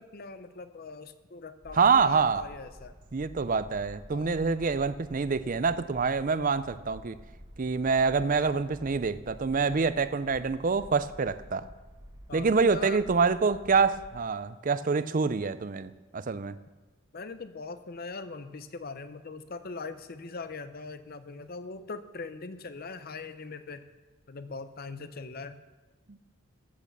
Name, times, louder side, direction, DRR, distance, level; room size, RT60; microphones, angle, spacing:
voice 1, 0.0-2.9 4.1-4.5 8.4-8.5 12.3-13.0 17.1-23.8 24.3-25.6, left 4 dB, 45° left, 12 dB, 0.6 m, -41 dB
sound 1, 1.6-14.2, equal, 20° right, 1.6 m, -50 dB
voice 2, 1.7-2.4 3.1-7.2 7.6-11.7 12.3-16.6 26.1-26.2, right 5 dB, 40° right, 14 dB, 0.5 m, -26 dB
14.0 x 8.7 x 6.8 m, 1.2 s
head